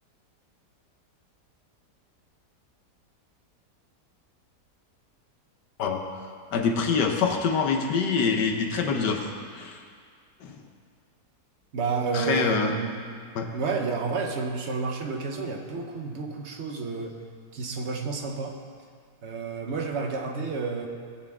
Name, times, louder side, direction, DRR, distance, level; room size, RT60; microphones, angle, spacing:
voice 1, 6.5-9.8 10.4-10.6 12.1-12.7 13.3-13.5, left 5 dB, 80° left, 3 dB, 1.6 m, -25 dB
voice 2, 11.7-12.9 13.5-17.2 17.5-18.6 19.2-20.9, right 4 dB, 45° right, 3 dB, 1.1 m, -30 dB
19.0 x 7.4 x 3.6 m, 2.1 s
omnidirectional pair, 1.8 m